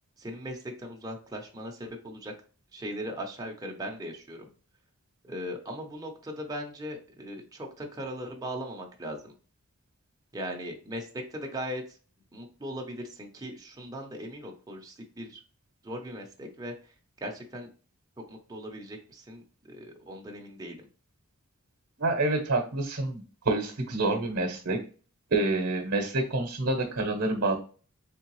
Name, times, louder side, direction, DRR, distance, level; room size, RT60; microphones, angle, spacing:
voice 1, 0.2-2.3 2.7-4.5 5.2-9.3 10.3-12.0 12.3-15.4 15.8-16.9 17.2-17.7 18.3-20.9, equal, 15° right, 1 dB, 0.6 m, -39 dB
voice 2, 22.0-24.8 25.3-27.6, right 2 dB, 55° right, 3 dB, 0.8 m, -27 dB
3.7 x 3.3 x 3.0 m, 0.38 s
head